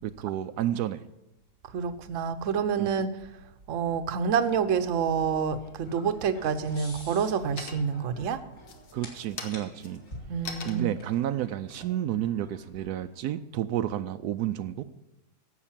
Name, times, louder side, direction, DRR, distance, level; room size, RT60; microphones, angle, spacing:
voice 1, 0.0-1.0 2.8-2.9 8.9-10.0 10.6-14.8, right 12 dB, 85° right, 10 dB, 1.1 m, -30 dB
voice 2, 1.7-3.1 3.7-8.4 10.3-10.9, right 6 dB, 60° right, 11 dB, 1.1 m, -28 dB
sound 1, 4.8-13.3, left 1 dB, 55° left, 2.9 m, -50 dB
sound 2, 7.6-8.1 8.6-13.0, left 5 dB, 80° left, 1.7 m, -43 dB
11.0 x 7.7 x 7.3 m, 0.95 s
omnidirectional pair, 1.6 m